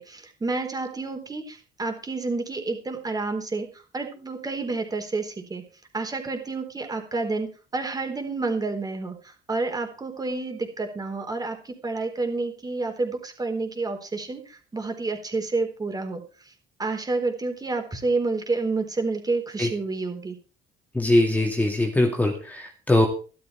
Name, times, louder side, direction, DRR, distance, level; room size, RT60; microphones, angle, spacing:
voice 1, 0.0-5.6 5.9-16.5 16.8-20.4, right 3 dB, 20° right, 4 dB, 4.1 m, -29 dB
voice 2, 20.9-23.1, left 1 dB, 10° left, 2 dB, 2.4 m, -21 dB
13.5 x 12.5 x 4.6 m, 0.36 s
cardioid pair, 110°, 17 cm